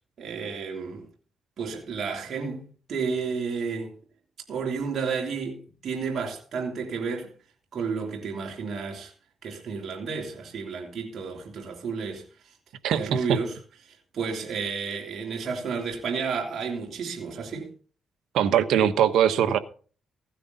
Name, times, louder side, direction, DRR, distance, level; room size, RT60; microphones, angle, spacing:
voice 1, 0.2-1.1 1.6-4.0 4.5-7.3 7.7-9.1 9.4-12.5 12.9-13.6 13.8-17.7, right 5 dB, 55° right, 3.2 m, -32 dB
voice 2, 12.8-13.4 18.3-19.6, right 9 dB, 80° right, 1.2 m, -21 dB
16.0 x 9.8 x 4.1 m
cardioid pair, 90°, 0 cm